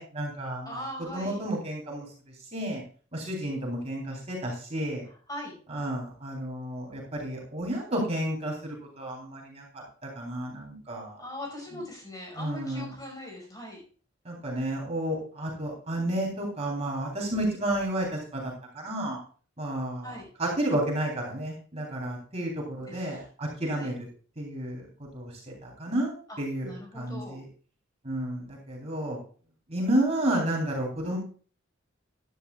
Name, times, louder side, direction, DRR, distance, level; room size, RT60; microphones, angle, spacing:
voice 1, 0.0-0.8 1.1-2.0 2.5-2.8 3.1-5.0 5.7-9.8 10.2-11.1 12.4-12.9 14.3-18.1 18.3-19.2 19.6-20.1 20.4-24.1 24.4-24.8 25.1-26.7 26.9-27.4 28.0-29.2 29.7-31.2, right 1 dB, 35° right, -1 dB, 3.5 m, -31 dB
voice 2, 0.7-1.4 5.3-5.5 11.2-13.8 20.0-20.3 22.9-23.2 23.7-23.9 26.3-27.4, left 1 dB, 20° left, 0 dB, 5.2 m, -40 dB
15.0 x 11.0 x 2.4 m, 0.41 s
head